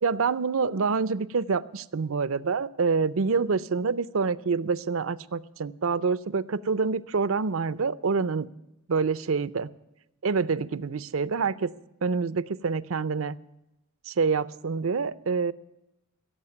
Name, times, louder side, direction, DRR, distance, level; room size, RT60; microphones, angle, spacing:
voice 1, 0.0-8.5 8.9-9.7 10.2-11.7 12.0-13.4 14.1-15.5, right 5 dB, 70° right, 18 dB, 0.6 m, -26 dB
16.5 x 7.4 x 9.6 m, 0.89 s
head